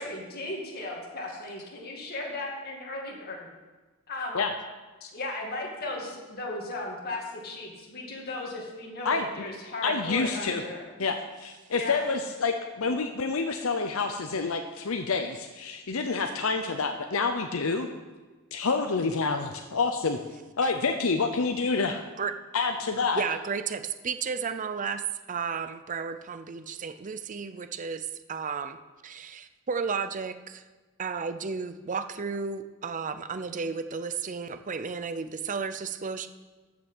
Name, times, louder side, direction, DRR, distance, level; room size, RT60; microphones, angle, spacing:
voice 1, 0.0-3.5 4.1-4.4 5.1-10.9 11.8-12.0, left 2 dB, 50° left, -2 dB, 2.3 m, -36 dB
voice 2, 9.8-10.6 11.0-17.9 18.5-20.2 20.6-22.0 22.5-23.2, left 4 dB, 80° left, 6 dB, 0.7 m, -28 dB
voice 3, 23.1-28.8 29.0-30.6 31.0-36.3, right 5 dB, 40° right, 11 dB, 0.5 m, -33 dB
14.0 x 6.1 x 6.2 m, 1.3 s
head